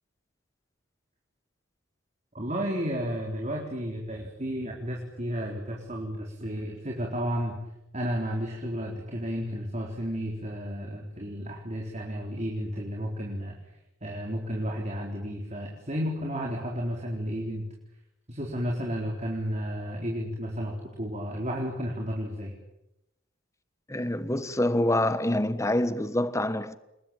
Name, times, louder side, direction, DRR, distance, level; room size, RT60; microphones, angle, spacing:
voice 1, 2.3-7.6 7.9-13.6 14.0-17.7 18.3-22.5, equal, 30° right, 4.1 m, -32 dB
voice 2, 23.9-26.8, left 1 dB, 15° left, 1.2 m, -26 dB
29.0 x 21.5 x 9.0 m
head